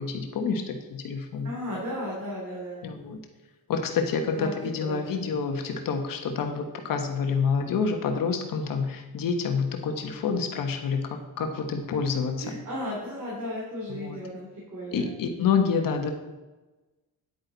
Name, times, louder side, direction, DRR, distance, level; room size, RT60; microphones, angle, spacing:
voice 1, 0.0-1.5 2.8-3.2 3.7-12.5 13.9-14.2 14.9-16.1, left 5 dB, 60° left, 4 dB, 1.2 m, -28 dB
voice 2, 1.4-2.9 4.2-4.5 4.8-5.2 12.4-15.1, left 1 dB, 45° right, -4 dB, 3.1 m, -35 dB
9.9 x 8.8 x 4.0 m, 1.1 s
cardioid pair, 130°, 38 cm